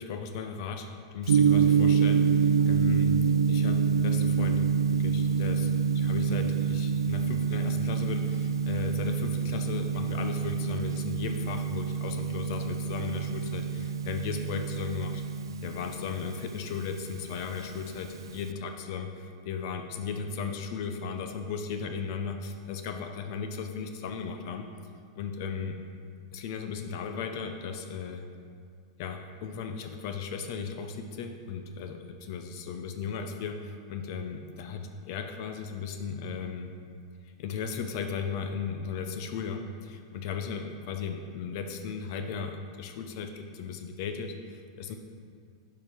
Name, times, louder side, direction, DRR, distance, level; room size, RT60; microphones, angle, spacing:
voice 1, 0.0-3.1 3.5-4.7 4.9-15.2 15.6-24.7 25.2-25.8 26.3-28.3 29.0-36.7 37.4-45.0, left 6 dB, 55° left, 6 dB, 0.7 m, -36 dB
Gong, 1.3-18.5, right 6 dB, 85° right, 0.3 m, -27 dB
7.3 x 5.0 x 5.5 m, 2.2 s
hypercardioid pair, 110°, 2 cm